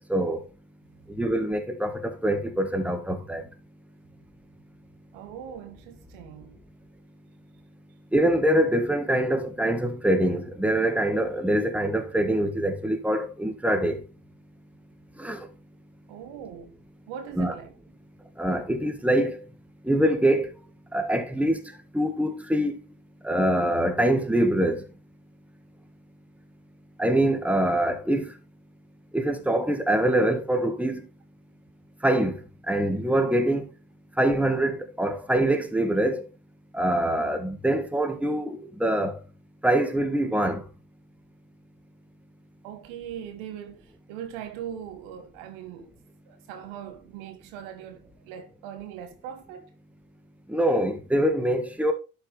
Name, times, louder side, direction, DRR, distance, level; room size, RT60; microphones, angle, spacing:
voice 1, 0.1-0.4 1.2-3.4 8.1-14.0 15.2-15.5 17.4-17.5 18.4-19.4 19.8-20.5 20.9-21.6 21.9-22.7 23.2-24.8 27.0-28.3 29.1-31.0 32.0-32.4 32.7-33.6 34.2-36.2 36.7-39.2 39.6-40.6 50.5-51.9, right 1 dB, 5° right, 1.6 m, -24 dB
voice 2, 5.1-6.6 16.1-16.7 17.1-17.7 42.6-45.9 46.3-49.7, right 9 dB, 70° right, 1.5 m, -40 dB
11.0 x 4.7 x 3.4 m
hypercardioid pair, 50°, 48 cm